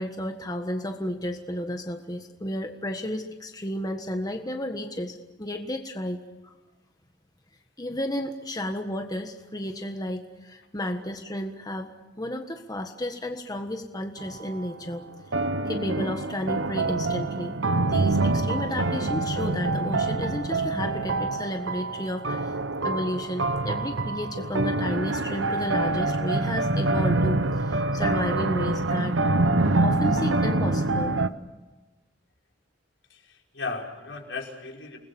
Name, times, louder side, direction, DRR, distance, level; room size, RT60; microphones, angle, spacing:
voice 1, 0.0-6.5 7.8-11.9 12.2-15.0 15.6-17.6 17.8-29.1 29.8-31.2, left 1 dB, 20° left, 5 dB, 1.5 m, -32 dB
sound 1, 14.2-14.7 15.3-31.3, right 2 dB, 90° right, 1.1 m, -26 dB
voice 2, 33.1-35.0, left 4 dB, 80° left, 0 dB, 5.4 m, -36 dB
29.5 x 20.5 x 7.2 m, 1.1 s
head